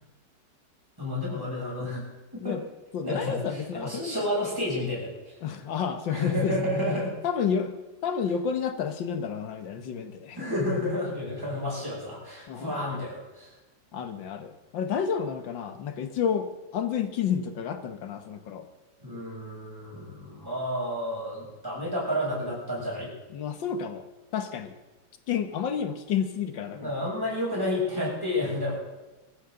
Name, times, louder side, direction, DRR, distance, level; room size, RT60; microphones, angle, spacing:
voice 1, 1.0-2.0 2.4-2.5 3.0-5.4 6.1-7.1 10.4-13.5 19.0-23.1 26.7-28.8, left 1 dB, 10° right, -5 dB, 6.9 m, -30 dB
voice 2, 2.9-4.1 5.4-6.6 7.2-7.8 8.0-10.4 12.5-12.7 13.9-18.7 23.3-24.1 24.3-24.7 25.3-26.9, left 7 dB, 85° left, 8 dB, 1.9 m, -30 dB
20.5 x 15.0 x 3.9 m, 1.1 s
omnidirectional pair, 2.0 m